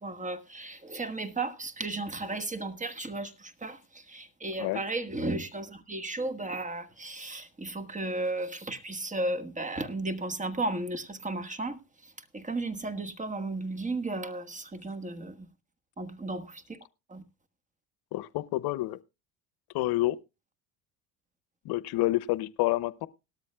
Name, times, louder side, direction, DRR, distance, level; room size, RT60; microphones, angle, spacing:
voice 1, 0.0-3.8 4.1-11.8 12.3-15.3 16.0-16.8 17.1-17.2, right 2 dB, 20° right, 1.4 m, -34 dB
voice 2, 18.1-19.0 19.7-20.2 21.7-23.1, left 17 dB, 65° left, 0.7 m, -28 dB
18.5 x 13.0 x 2.2 m
supercardioid pair, 85°, 40 cm